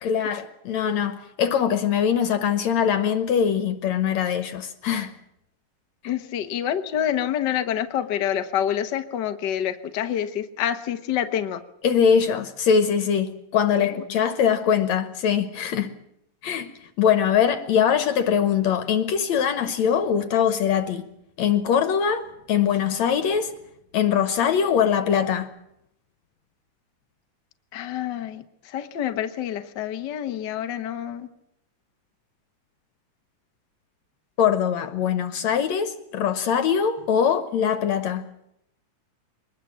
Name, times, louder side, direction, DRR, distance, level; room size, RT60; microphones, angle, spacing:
voice 1, 0.0-5.1 6.0-6.2 11.8-15.9 16.4-21.1 21.4-23.5 23.9-25.5 34.4-38.3, left 8 dB, 65° left, 2.1 m, -22 dB
voice 2, 6.0-11.6 13.8-13.9 27.7-28.4 28.7-31.3, left 10 dB, 85° left, 0.9 m, -27 dB
23.5 x 20.5 x 7.5 m
omnidirectional pair, 3.8 m